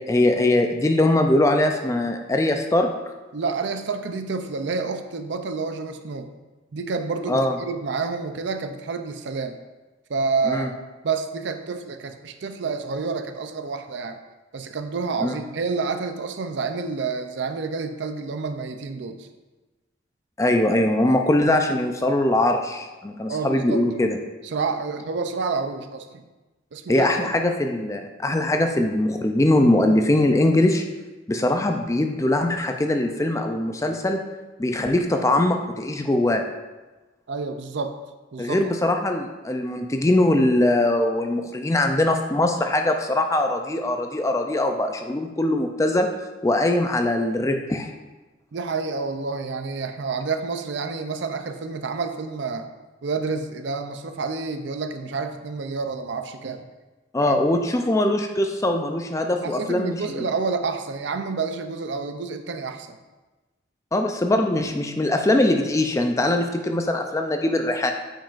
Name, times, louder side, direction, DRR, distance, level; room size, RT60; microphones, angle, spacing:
voice 1, 0.1-2.9 7.3-7.5 10.5-10.7 15.2-15.4 20.4-24.2 26.9-30.8 31.3-34.2 34.6-36.4 38.4-46.1 46.4-47.9 57.1-60.3 63.9-67.9, left 1 dB, 15° left, 5 dB, 0.3 m, -21 dB
voice 2, 3.3-6.3 6.7-9.6 10.1-10.7 11.0-14.2 14.5-19.3 23.3-23.8 24.4-26.2 26.7-27.3 37.3-38.0 38.3-38.6 48.5-52.7 53.0-56.7 57.2-57.3 59.4-63.0, right 4 dB, 60° right, 7 dB, 0.5 m, -29 dB
8.8 x 5.1 x 2.5 m, 1.2 s
head